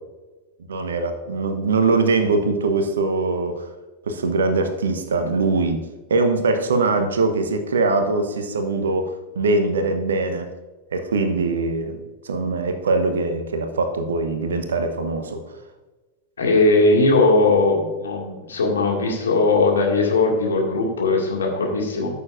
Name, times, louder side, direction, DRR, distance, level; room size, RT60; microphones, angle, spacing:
voice 1, 0.7-3.7 4.1-5.8 6.1-10.5 10.9-15.4, right 3 dB, 65° right, 8 dB, 1.0 m, -22 dB
voice 2, 16.4-22.1, left 3 dB, 70° left, 0 dB, 2.2 m, -19 dB
14.0 x 6.9 x 2.6 m, 1.2 s
figure-of-eight pair, 90°, 0 cm